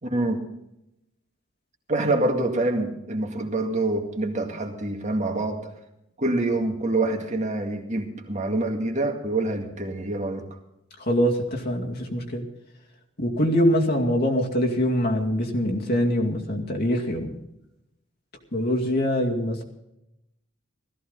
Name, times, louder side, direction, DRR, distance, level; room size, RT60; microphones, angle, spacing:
voice 1, 0.0-0.5 1.9-5.7 6.2-10.5, right 2 dB, 35° right, 3 dB, 2.1 m, -26 dB
voice 2, 11.0-12.5 13.2-17.4 18.5-19.6, equal, 50° left, 1 dB, 2.3 m, -24 dB
17.0 x 14.5 x 4.0 m, 0.85 s
head